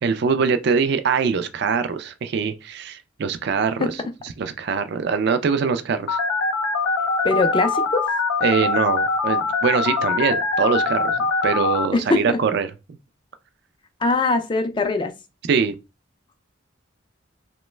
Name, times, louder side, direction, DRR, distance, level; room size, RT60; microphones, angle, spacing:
voice 1, 0.0-6.2 8.4-13.0 15.5-15.8, right 5 dB, 55° right, 0.3 m, -23 dB
Telephone, 6.1-11.9, left 3 dB, 80° left, 0.5 m, -23 dB
voice 2, 7.2-8.1 11.9-12.4 14.0-15.1, left 3 dB, 25° left, 0.3 m, -21 dB
2.9 x 2.1 x 3.1 m
head